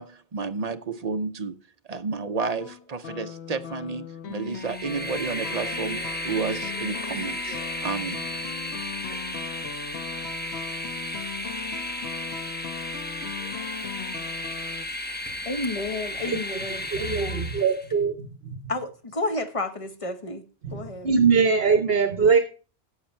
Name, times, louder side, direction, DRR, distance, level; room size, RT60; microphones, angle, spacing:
voice 1, 0.0-1.6 1.9-8.3, right 4 dB, 45° right, 0.6 m, -31 dB
sound 1, 2.6-14.9, left 7 dB, 85° left, 1.1 m, -38 dB
Train, 4.4-17.9, equal, 10° left, 0.8 m, -34 dB
voice 2, 15.5-17.5 18.7-20.4 20.7-21.1, left 2 dB, 30° left, 1.1 m, -31 dB
voice 3, 16.9-18.6 20.6-22.4, right 5 dB, 65° right, 1.2 m, -22 dB
11.5 x 7.8 x 4.4 m
omnidirectional pair, 1.1 m